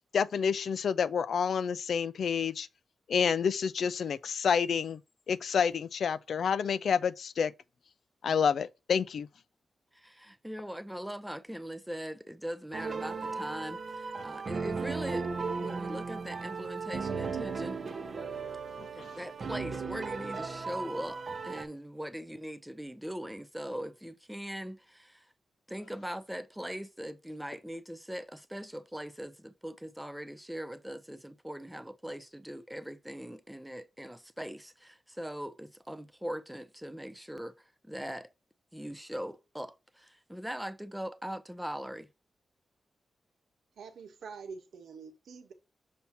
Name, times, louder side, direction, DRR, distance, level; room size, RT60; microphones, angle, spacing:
voice 1, 0.1-2.7 3.1-5.0 5.3-7.5 8.2-9.3 18.8-19.1, left 6 dB, 65° left, 0.4 m, -29 dB
voice 2, 9.9-17.8 18.9-25.3 25.7-37.5 37.8-38.3 38.7-42.1, equal, 5° right, 0.4 m, -41 dB
sound 1, 12.7-21.6, right 4 dB, 40° right, 0.6 m, -36 dB
voice 3, 43.8-45.5, right 5 dB, 85° right, 1.2 m, -46 dB
6.9 x 2.8 x 5.8 m
wide cardioid pair, 180°, 0 cm